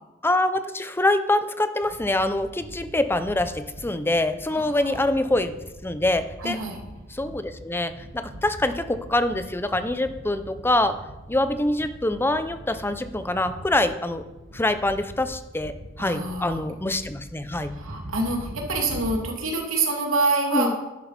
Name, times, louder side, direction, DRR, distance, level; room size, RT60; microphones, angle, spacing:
voice 1, 0.2-6.6 7.1-11.0 11.3-14.2 14.5-17.8 20.5-20.8, left 1 dB, 10° left, 10 dB, 0.6 m, -25 dB
sound 1, 1.8-19.2, equal, 65° right, 1.8 m, -42 dB
voice 2, 4.5-5.0 6.4-6.8 16.0-16.6 17.7-20.8, right 3 dB, 85° right, 1 dB, 2.6 m, -26 dB
11.5 x 11.0 x 4.2 m, 1.0 s
head